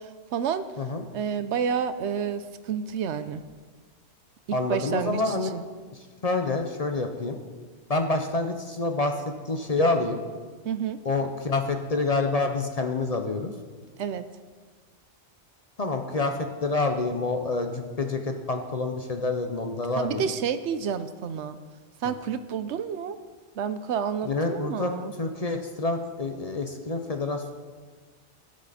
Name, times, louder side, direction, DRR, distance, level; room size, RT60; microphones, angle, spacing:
voice 1, 0.0-0.6 1.1-3.4 4.7-5.6 10.6-11.0 14.0-14.3 20.0-21.6 22.0-23.2 23.6-25.1, right 7 dB, 75° right, 12 dB, 0.9 m, -30 dB
voice 2, 0.8-1.1 4.5-5.5 6.2-7.4 7.9-9.1 9.4-10.2 11.0-13.5 15.8-20.3 22.0-22.1 24.2-24.9 25.2-27.5, left 3 dB, 35° left, 5 dB, 0.8 m, -27 dB
18.0 x 6.6 x 4.2 m, 1.5 s
omnidirectional pair, 1.2 m